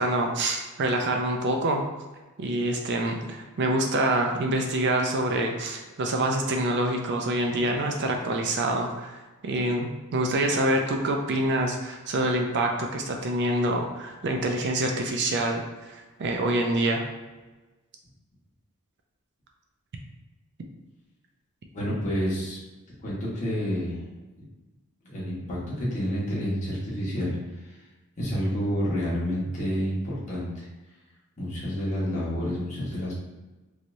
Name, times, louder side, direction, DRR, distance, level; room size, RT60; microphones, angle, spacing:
voice 1, 0.0-1.8 2.4-17.0, right 1 dB, 55° right, 2 dB, 0.4 m, -26 dB
voice 2, 21.7-22.6 23.0-24.3 25.0-27.4 27.6-27.8 28.2-30.7 31.4-33.1, equal, 35° left, -7 dB, 1.2 m, -29 dB
3.2 x 2.8 x 2.6 m, 1.2 s
head